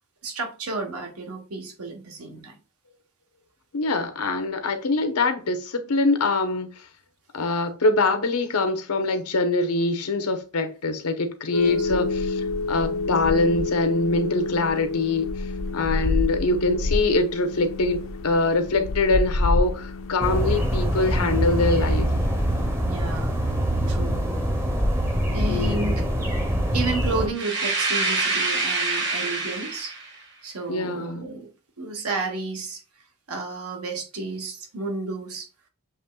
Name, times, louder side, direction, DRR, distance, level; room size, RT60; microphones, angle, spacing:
voice 1, 0.2-2.6 11.6-11.8 16.1-16.2 22.9-23.4 23.9-24.2 25.3-26.0 26.7-29.9 30.4-31.5 31.8-32.8 33.3-35.5, right 3 dB, 85° right, 1.1 m, -32 dB
voice 2, 3.7-6.7 7.3-12.4 12.7-15.3 15.7-22.1 25.5-26.0 30.7-31.2, left 3 dB, 90° left, 0.8 m, -24 dB
sound 1, 11.5-22.7, left 2 dB, 60° left, 0.4 m, -28 dB
sound 2, 20.2-27.3, equal, 10° right, 0.6 m, -24 dB
sound 3, 27.3-30.1, right 3 dB, 50° right, 1.2 m, -26 dB
7.0 x 3.0 x 2.2 m
head